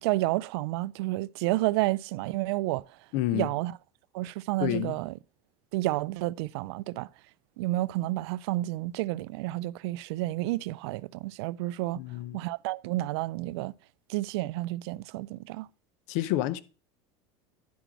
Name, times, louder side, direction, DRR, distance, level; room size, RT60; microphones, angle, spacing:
voice 1, 0.0-2.8 3.3-3.7 4.1-5.1 5.7-7.1 7.6-12.0 12.3-13.7 14.1-15.7, right 18 dB, 70° right, 0.4 m, -30 dB
voice 2, 3.1-3.5 4.6-5.0 11.9-12.4 16.1-16.6, left 14 dB, 60° left, 0.7 m, -29 dB
10.5 x 5.0 x 4.6 m
supercardioid pair, 125°, 14 cm